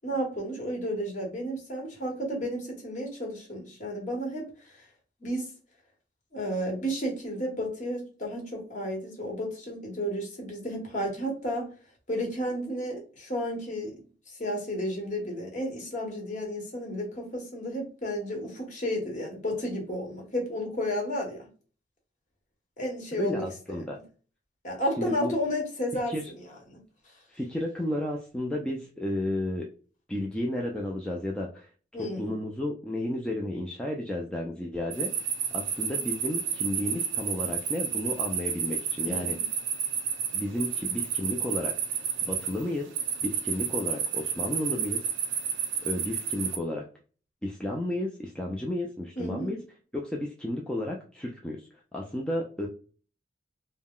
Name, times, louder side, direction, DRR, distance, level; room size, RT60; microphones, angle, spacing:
voice 1, 0.0-4.8 5.2-5.5 6.3-11.7 12.1-13.9 14.4-21.5 22.8-23.4 23.8-24.0 24.6-26.4 26.7-26.8 31.9-32.3 39.0-39.4 49.2-49.6, equal, 40° left, 1.0 m, -32 dB
voice 2, 23.2-24.0 25.0-25.3 26.1-26.2 27.3-29.7 30.1-31.7 32.2-35.3 35.5-39.4 40.3-42.9 43.2-45.0 45.8-46.9 47.4-49.6 49.9-51.7 51.9-52.7, left 1 dB, 5° left, 0.3 m, -32 dB
sound 1, 34.9-46.6, right 8 dB, 85° right, 0.5 m, -31 dB
2.3 x 2.1 x 3.5 m
head